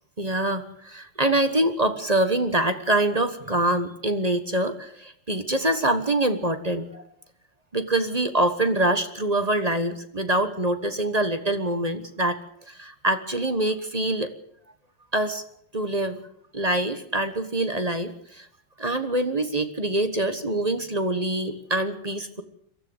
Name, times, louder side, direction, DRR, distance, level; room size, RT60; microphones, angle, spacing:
voice 1, 0.2-7.0 7.7-12.4 12.7-14.3 15.1-15.4 15.7-16.2 16.5-18.5 18.8-22.4, right 1 dB, 25° right, 9 dB, 1.2 m, -25 dB
23.5 x 14.0 x 8.0 m, 0.69 s
omnidirectional pair, 2.0 m